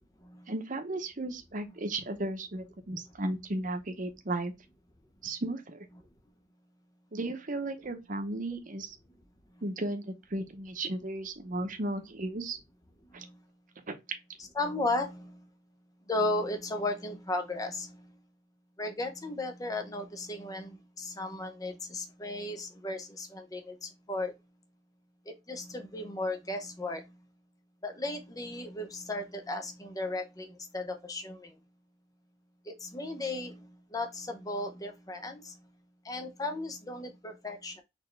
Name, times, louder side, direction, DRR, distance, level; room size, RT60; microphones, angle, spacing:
voice 1, 0.5-4.5 5.2-5.9 7.1-9.0 9.6-12.6 13.1-13.3 13.9-14.0, right 2 dB, 45° right, 0.8 m, -35 dB
voice 2, 14.5-15.5 16.1-18.1 18.8-24.3 25.3-27.2 27.8-31.6 32.7-35.6 36.0-37.8, left 2 dB, 20° left, 0.6 m, -35 dB
4.3 x 3.1 x 3.2 m
head